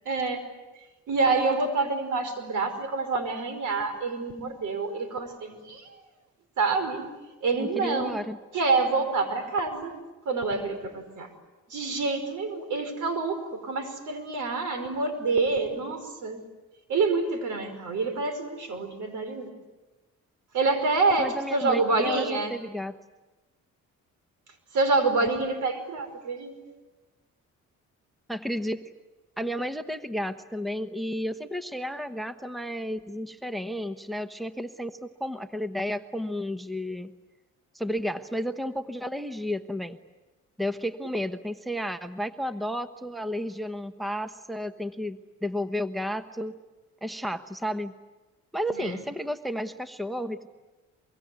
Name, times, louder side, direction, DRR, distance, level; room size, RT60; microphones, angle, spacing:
voice 1, 0.0-0.4 1.1-6.0 6.6-7.1 7.4-8.1 8.5-10.0 10.2-11.3 11.7-16.4 16.9-19.5 20.5-22.5 24.7-26.5 48.8-49.0, right 3 dB, 75° right, 9 dB, 5.1 m, -27 dB
voice 2, 7.5-8.4 21.2-23.0 28.3-28.8 29.4-37.1 37.7-40.0 40.6-46.6 47.0-47.9 48.5-50.5, equal, ahead, 10 dB, 1.1 m, -32 dB
24.0 x 23.5 x 9.5 m, 1.2 s
cardioid pair, 90°, 30 cm